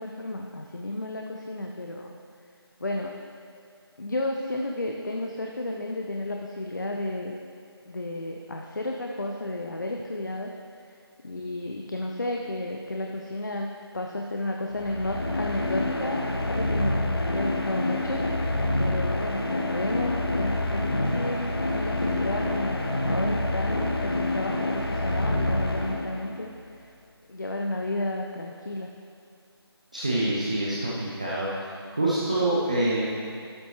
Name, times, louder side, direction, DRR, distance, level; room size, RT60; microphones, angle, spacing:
voice 1, 0.0-2.2 2.8-3.1 4.0-7.4 7.9-10.5 11.2-18.2 18.8-26.5 26.8-26.9 27.3-28.9, left 2 dB, 45° left, 1 dB, 0.6 m, -32 dB
sound 1, 14.7-26.4, left 1 dB, 65° left, 1.0 m, -27 dB
voice 2, 29.9-31.7 32.0-33.1, right 1 dB, 15° right, -8 dB, 0.6 m, -26 dB
12.0 x 6.9 x 3.0 m, 2.4 s
figure-of-eight pair, 165°, 14 cm